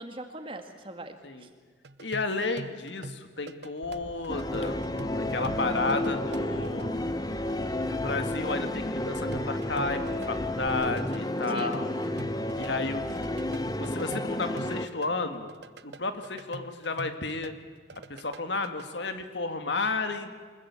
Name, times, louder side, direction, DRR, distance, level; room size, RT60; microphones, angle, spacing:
voice 1, 0.0-1.2 1.4-1.5 5.6-5.9 11.5-11.8 12.5-12.7, right 1 dB, 30° right, 6 dB, 1.9 m, -40 dB
sound 1, 1.8-6.9 9.3-12.7 13.0-17.5 17.8-18.9, right 2 dB, 65° right, 0.8 m, -44 dB
voice 2, 2.0-4.8 5.2-7.0 7.3-7.4 7.7-11.9 12.6-13.2 13.4-15.5 15.8-17.5 18.1-20.3, left 3 dB, 70° left, 8 dB, 1.9 m, -32 dB
sound 2, 3.8-10.7, equal, 15° right, 1.8 m, -48 dB
sound 3, 4.3-14.9, left 1 dB, 20° left, 0.9 m, -31 dB
24.0 x 21.0 x 8.4 m, 1.6 s
head